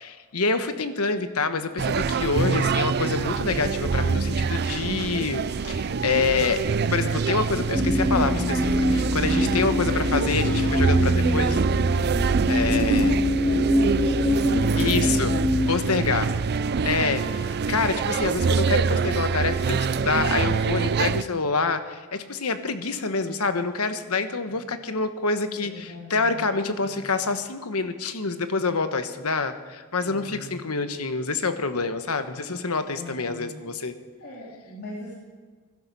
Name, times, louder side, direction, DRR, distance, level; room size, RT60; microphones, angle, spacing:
voice 1, 0.0-6.6 6.9-11.6 12.5-13.2 14.8-15.3 15.7-16.3 16.8-34.0, left 4 dB, 85° left, 9 dB, 1.2 m, -27 dB
sound 1, 1.8-21.2, right 5 dB, 50° right, 0.4 m, -25 dB
sound 2, 7.7-15.7, left 1 dB, 10° right, 2.5 m, -24 dB
voice 2, 14.0-15.2 15.8-16.2 24.5-24.6 25.6-26.4 26.8-27.1 30.0-30.6 32.9-33.7 34.2-35.1, left 1 dB, 50° left, -5 dB, 3.8 m, -39 dB
21.5 x 12.0 x 5.5 m, 1.5 s
head